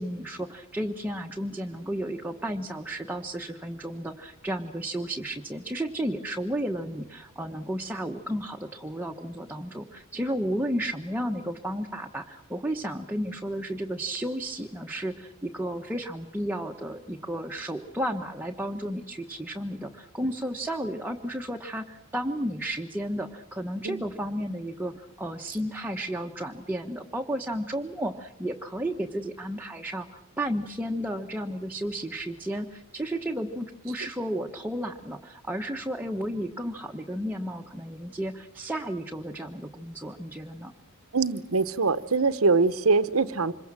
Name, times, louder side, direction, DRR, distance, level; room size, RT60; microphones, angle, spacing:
voice 1, 0.0-30.1 30.4-40.7, right 1 dB, 10° right, 2 dB, 1.0 m, -33 dB
voice 2, 41.1-43.5, right 4 dB, 70° right, 15 dB, 1.0 m, -23 dB
26.5 x 22.5 x 7.5 m, 0.88 s
head